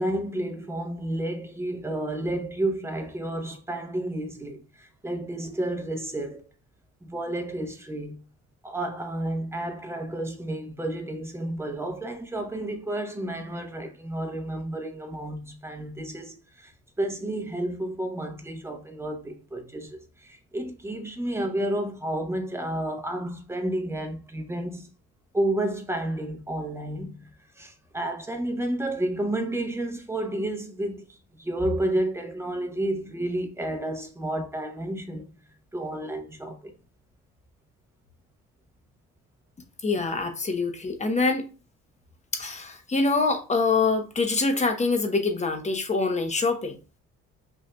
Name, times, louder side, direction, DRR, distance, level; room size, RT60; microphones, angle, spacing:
voice 1, 0.0-6.4 7.0-8.1 8.6-16.7 17.0-24.9 25.3-27.3 27.6-35.3 35.7-36.7, right 1 dB, 10° right, 0.8 m, -31 dB
voice 2, 39.8-41.4 42.3-46.8, left 3 dB, 25° left, 0.8 m, -25 dB
5.4 x 2.7 x 2.2 m
cardioid pair, 90°, 30 cm